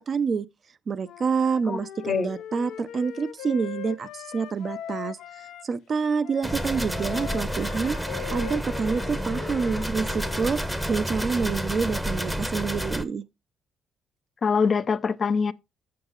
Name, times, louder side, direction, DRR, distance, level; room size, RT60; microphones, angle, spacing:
voice 1, 0.1-0.5 0.9-5.2 5.6-8.0 8.3-10.6 10.9-13.2, right 5 dB, 45° right, 0.7 m, -27 dB
Wind instrument woodwind instrument, 1.0-5.7 6.2-11.1, left 10 dB, 85° left, 0.6 m, -40 dB
sound 1, 6.4-13.0, equal, 5° right, 0.8 m, -30 dB
voice 2, 14.4-15.5, left 5 dB, 45° left, 0.5 m, -23 dB
7.1 x 6.8 x 3.9 m
cardioid pair, 90°, 0 cm